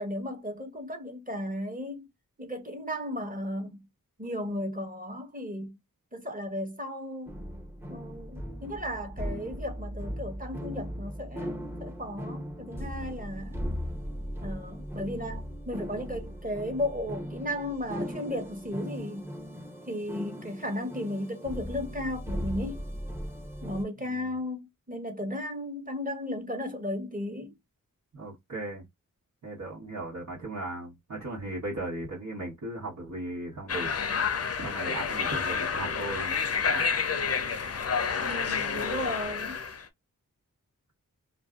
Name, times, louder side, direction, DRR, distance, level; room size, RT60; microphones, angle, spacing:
voice 1, 0.0-2.1 2.4-3.8 4.2-5.7 6.1-7.3 7.9-13.6 14.4-19.3 19.9-22.8 23.6-27.5 38.2-39.6, left 1 dB, 25° right, 1.0 m, -35 dB
sound 1, 7.3-23.8, equal, 5° right, 0.6 m, -38 dB
voice 2, 24.0-24.3 28.1-28.8 29.4-33.9 34.6-36.4 36.7-36.9, right 2 dB, 70° right, 1.1 m, -37 dB
sound 2, 33.7-39.8, left 6 dB, 45° left, 0.5 m, -29 dB
2.5 x 2.3 x 2.3 m
cardioid pair, 55°, 34 cm